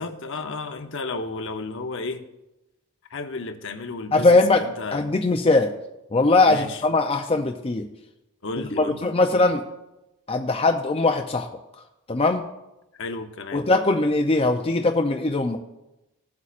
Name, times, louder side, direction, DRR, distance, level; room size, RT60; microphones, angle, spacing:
voice 1, 0.0-2.2 3.1-5.1 6.4-6.8 8.4-9.0 9.3-9.5 12.9-13.6, left 3 dB, 60° left, 7 dB, 0.8 m, -33 dB
voice 2, 4.1-4.6 4.9-5.7 6.1-7.9 8.8-9.6 10.3-11.5 12.1-12.4 13.5-15.6, left 2 dB, 25° left, 4 dB, 0.5 m, -20 dB
16.5 x 8.3 x 2.5 m, 0.93 s
head